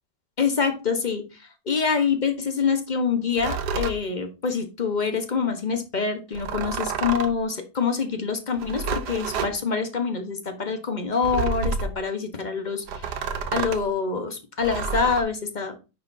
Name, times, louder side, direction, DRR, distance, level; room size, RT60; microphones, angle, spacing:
voice 1, 0.4-13.2 13.5-15.8, left 5 dB, 30° left, 7 dB, 1.0 m, -26 dB
sound 1, 3.4-4.0 6.3-7.4 8.5-9.5 11.2-12.0 12.9-13.9 14.6-15.2, right 5 dB, 80° right, 1.4 m, -29 dB
9.7 x 6.8 x 2.7 m, 0.30 s
omnidirectional pair, 1.8 m